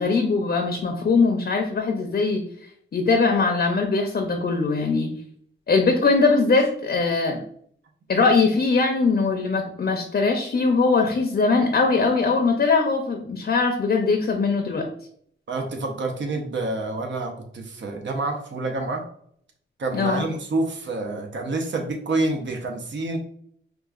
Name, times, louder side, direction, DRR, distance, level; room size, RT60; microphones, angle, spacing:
voice 1, 0.0-2.4 2.9-5.1 5.7-7.4 8.1-14.9 19.9-20.2, left 4 dB, 50° left, 3 dB, 0.5 m, -21 dB
voice 2, 15.5-19.1 19.8-23.2, right 2 dB, 65° right, 3 dB, 0.7 m, -28 dB
4.7 x 2.3 x 2.4 m, 0.63 s
wide cardioid pair, 95°, 21 cm